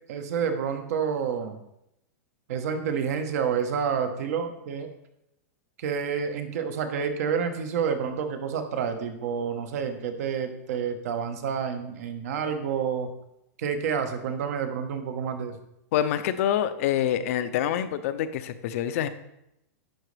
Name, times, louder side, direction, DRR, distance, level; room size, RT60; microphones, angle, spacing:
voice 1, 0.1-1.6 2.5-4.9 5.8-13.1 13.6-15.6, right 7 dB, 70° right, 7 dB, 1.1 m, -29 dB
voice 2, 15.9-19.1, left 10 dB, 60° left, 12 dB, 0.5 m, -26 dB
10.5 x 3.9 x 3.3 m, 0.82 s
supercardioid pair, 140°, 9 cm